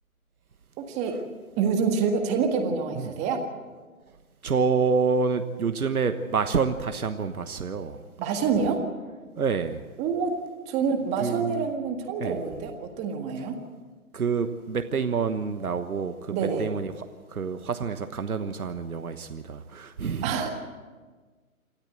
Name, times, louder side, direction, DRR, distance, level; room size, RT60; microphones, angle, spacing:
voice 1, 0.9-1.2 1.6-3.4 8.2-8.8 10.0-10.4 10.7-13.6 16.3-16.7 20.2-20.5, right 5 dB, 15° right, 4 dB, 1.7 m, -27 dB
voice 2, 4.4-8.0 9.4-9.8 11.2-11.7 12.2-12.4 14.1-17.0 17.3-20.5, right 5 dB, 85° right, 8 dB, 1.3 m, -28 dB
27.0 x 13.5 x 7.8 m, 1.4 s
hypercardioid pair, 150°, 43 cm